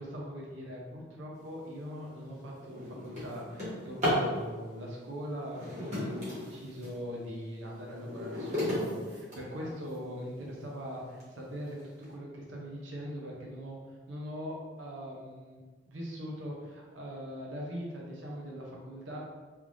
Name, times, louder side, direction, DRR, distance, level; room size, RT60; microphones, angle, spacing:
voice 1, 0.0-11.8 12.1-13.8 14.1-15.6 15.9-19.2, equal, 85° right, -2 dB, 0.7 m, -41 dB
Drawer open or close, 1.7-1.9 2.4-4.3 5.4-7.0 7.5-10.0 10.6-10.7 11.2-11.3 11.7-12.0, equal, 35° right, 1.1 m, -34 dB
3.2 x 3.2 x 2.5 m, 1.4 s
head